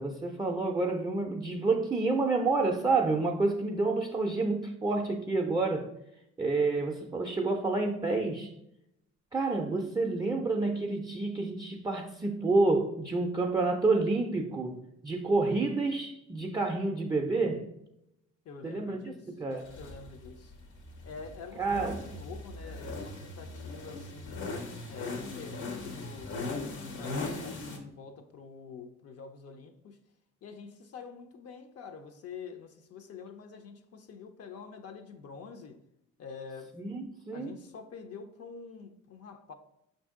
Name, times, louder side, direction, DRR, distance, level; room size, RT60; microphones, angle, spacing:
voice 1, 0.0-5.9 6.4-8.5 9.3-14.8 15.0-17.7 18.6-19.0 19.4-19.8 21.6-22.0 36.8-37.5, right 3 dB, 15° right, 0.4 m, -29 dB
voice 2, 18.5-19.3 19.8-20.5 21.0-24.6 24.9-30.0 30.4-35.8 36.2-36.8 37.3-39.5, left 5 dB, 55° left, 0.5 m, -46 dB
sound 1, 19.6-27.8, left 2 dB, 80° left, 0.9 m, -39 dB
5.6 x 2.6 x 3.6 m
cardioid pair, 90°, 30 cm